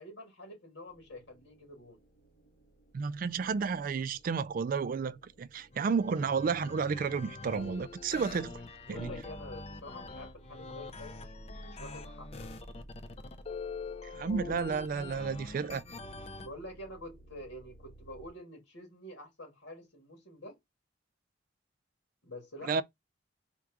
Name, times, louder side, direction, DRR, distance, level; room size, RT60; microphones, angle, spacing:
voice 1, 0.0-2.0 8.8-12.6 16.4-20.6 22.2-22.8, left 1 dB, 90° left, 1.9 m, -48 dB
sound 1, 0.9-18.3, right 1 dB, 70° left, 1.6 m, -56 dB
voice 2, 2.9-8.6 8.9-9.1 14.0-15.8 22.6-22.8, right 5 dB, 45° right, 0.3 m, -32 dB
sound 2, 5.7-16.5, left 3 dB, 30° left, 0.5 m, -44 dB
4.4 x 2.5 x 4.6 m
head